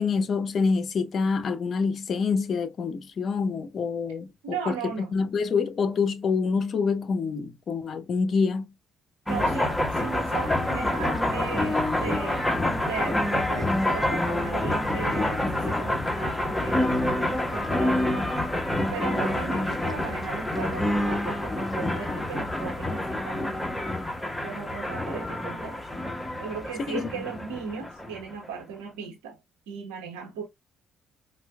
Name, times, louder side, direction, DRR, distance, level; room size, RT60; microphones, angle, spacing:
voice 1, 0.0-8.7 26.9-27.1, left 5 dB, 55° left, 0.7 m, -26 dB
voice 2, 4.4-5.1 9.3-12.5 12.9-18.3 18.9-23.7 24.4-25.8 26.4-29.4 29.7-30.5, right 6 dB, 85° right, 1.1 m, -37 dB
sound 1, 9.3-28.5, left 1 dB, 10° left, 1.2 m, -27 dB
4.4 x 2.4 x 2.2 m
hypercardioid pair, 55°, 0 cm